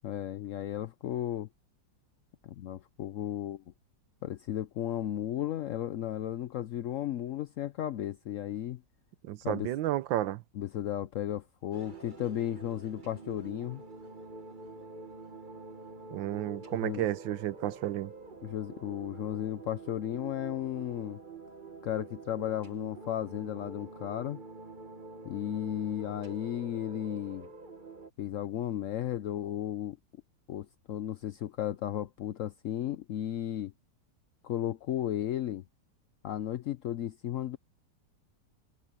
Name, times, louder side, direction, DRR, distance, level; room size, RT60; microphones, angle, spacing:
voice 1, 0.0-1.5 2.4-3.6 4.2-8.8 9.4-9.7 10.5-13.8 16.8-17.1 18.4-21.2 21.8-24.4 25.2-27.5 28.2-30.0 30.5-33.7 34.4-35.6 36.2-37.6, left 11 dB, 70° left, 0.7 m, -34 dB
voice 2, 9.2-10.4 16.1-18.1, right 13 dB, 85° right, 1.5 m, -32 dB
sound 1, 11.7-28.1, right 3 dB, 30° right, 1.3 m, -47 dB
omnidirectional pair, 2.0 m